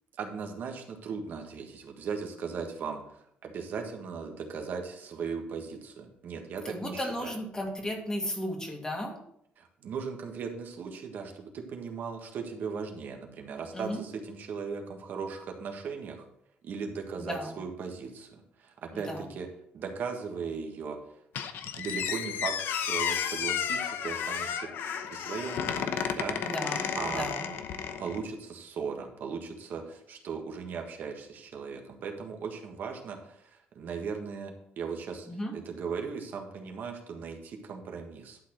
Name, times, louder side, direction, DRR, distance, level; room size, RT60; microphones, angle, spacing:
voice 1, 0.2-3.0 3.4-7.4 9.6-16.3 16.6-19.5 19.7-21.0 21.8-24.7 25.0-26.5 27.0-27.3 28.0-35.3 35.5-38.4, right 5 dB, 60° right, 3 dB, 1.5 m, -38 dB
voice 2, 6.6-9.2 13.7-14.0 17.2-17.6 18.9-19.2 26.4-27.5 35.3-35.6, equal, 20° left, 1 dB, 2.4 m, -35 dB
Squeak, 21.3-28.2, left 8 dB, 75° left, 0.8 m, -32 dB
11.5 x 4.1 x 6.3 m, 0.72 s
cardioid pair, 110°, 4 cm